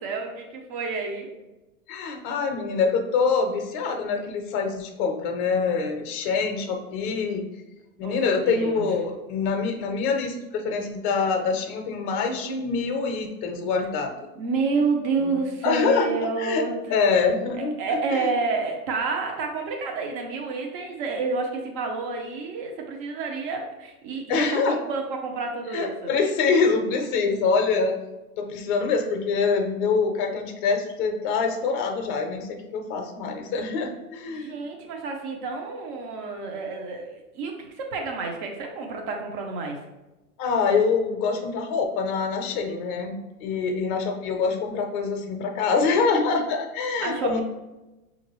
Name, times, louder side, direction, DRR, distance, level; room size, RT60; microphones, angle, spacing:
voice 1, 0.0-1.3 8.0-8.9 14.4-17.0 17.8-26.1 34.3-39.8 47.0-47.4, right 4 dB, 35° right, 2 dB, 0.7 m, -29 dB
voice 2, 1.9-7.4 8.0-14.1 15.2-15.4 15.6-16.6 16.9-17.8 18.1-18.3 24.3-24.8 25.7-27.9 28.4-34.5 40.4-47.4, left 5 dB, 35° left, 4 dB, 0.6 m, -25 dB
5.7 x 2.6 x 3.0 m, 1.0 s
supercardioid pair, 145°, 42 cm